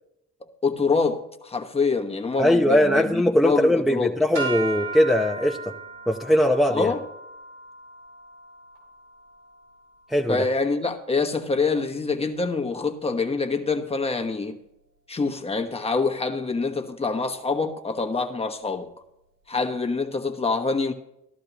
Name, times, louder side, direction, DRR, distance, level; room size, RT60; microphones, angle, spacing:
voice 1, 0.6-4.1 6.7-7.0 10.3-14.6 15.1-18.9 19.5-20.9, left 4 dB, 20° left, 1.1 m, -25 dB
voice 2, 2.4-5.7 6.1-6.9 10.1-10.4, equal, ahead, 0.7 m, -20 dB
sound 1, 4.3-10.7, right 3 dB, 85° right, 4.7 m, -37 dB
15.0 x 11.5 x 3.0 m
cardioid pair, 90°, 30 cm